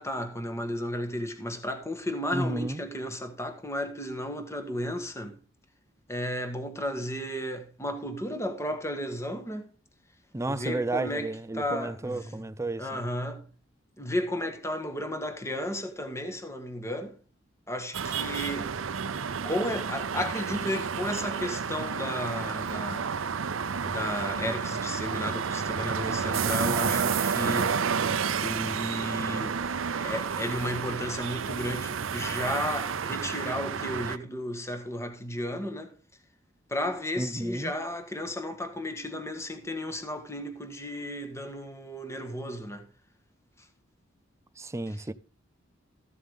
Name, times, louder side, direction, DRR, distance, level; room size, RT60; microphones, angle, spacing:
voice 1, 0.0-5.4 6.1-9.7 10.5-11.3 11.5-12.4 12.8-13.5 14.0-17.2 17.7-18.7 19.4-23.1 23.9-27.8 28.4-29.6 30.0-35.9 36.7-42.9, left 1 dB, 15° left, 1.6 m, -33 dB
voice 2, 2.3-2.8 10.3-13.0 37.2-37.7 44.6-45.1, right 2 dB, 15° right, 0.5 m, -32 dB
sound 1, 17.9-34.2, right 6 dB, 80° right, 0.6 m, -30 dB
14.5 x 7.3 x 3.7 m
head